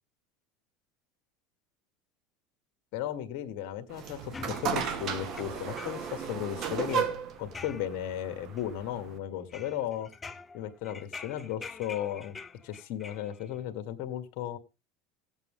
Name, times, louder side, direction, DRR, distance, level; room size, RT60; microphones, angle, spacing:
voice 1, 2.9-4.3 4.6-7.0 7.4-10.1 10.5-12.4 12.6-14.6, left 11 dB, 65° left, 8 dB, 1.7 m, -35 dB
sound 1, 3.9-9.2, right 7 dB, 50° right, 1.9 m, -34 dB
sound 2, 4.3-6.2 6.6-8.2 8.6-9.1 9.5-13.6, left 4 dB, 20° left, 0.8 m, -46 dB
17.0 x 8.2 x 3.7 m, 0.28 s
supercardioid pair, 125°, 0 cm